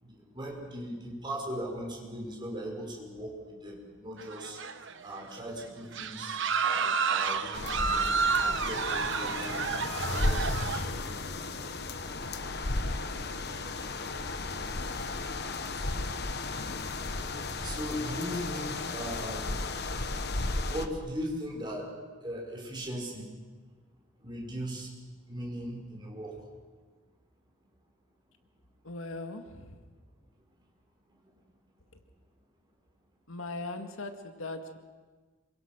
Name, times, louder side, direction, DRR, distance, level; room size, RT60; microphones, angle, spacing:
voice 1, 0.0-4.6 5.0-9.6 10.1-11.1 17.6-19.4 20.7-21.9 22.2-23.3 24.2-24.9 25.3-26.3, equal, 25° right, -1 dB, 5.5 m, -38 dB
sound 1, 4.2-5.0 5.4-5.5 5.9-10.8, right 5 dB, 60° right, 1.1 m, -30 dB
sound 2, 7.5-20.9, left 2 dB, 55° left, 1.3 m, -34 dB
voice 2, 28.8-29.9 31.9-32.0 33.3-34.8, left 2 dB, 90° left, 6 dB, 2.0 m, -40 dB
27.0 x 23.5 x 6.1 m, 1.4 s
head